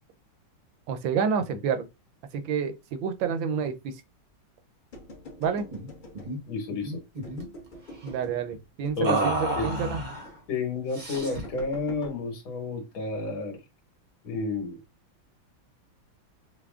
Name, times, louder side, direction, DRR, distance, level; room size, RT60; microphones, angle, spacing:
voice 1, 0.9-1.9 2.3-3.9 5.4-5.7 8.0-10.0, right 6 dB, 75° right, 1.3 m, -28 dB
sound 1, 4.9-6.6 7.2-8.4 8.8-9.8 10.2-10.4 11.1-12.2, left 2 dB, 40° left, 0.7 m, -45 dB
sound 2, 5.7-5.9 6.1-6.4 6.7-7.5 9.0-10.3 10.9-11.5, right 2 dB, 40° right, 0.6 m, -30 dB
voice 2, 6.5-7.0 9.0-9.2 9.6-9.7 10.5-13.6 14.2-14.8, left 3 dB, 85° left, 2.0 m, -31 dB
5.7 x 2.2 x 2.4 m
omnidirectional pair, 2.2 m